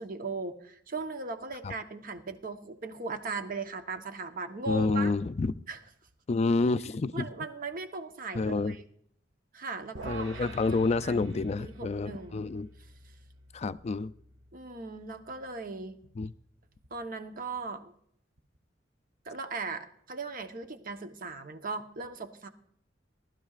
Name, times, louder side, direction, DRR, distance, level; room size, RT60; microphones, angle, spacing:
voice 1, 0.0-5.1 5.7-5.8 7.1-8.8 9.5-11.2 11.6-12.4 13.0-13.1 14.5-16.0 16.9-17.9 19.2-22.5, right 3 dB, 50° right, 7 dB, 1.0 m, -38 dB
voice 2, 4.7-5.5 6.3-7.3 8.3-8.8 10.0-12.7 13.5-14.1 16.2-16.3, left 3 dB, 35° left, 15 dB, 0.4 m, -28 dB
sound 1, 9.9-16.3, right 1 dB, 80° right, 1.4 m, -48 dB
19.0 x 12.5 x 2.4 m, 0.68 s
head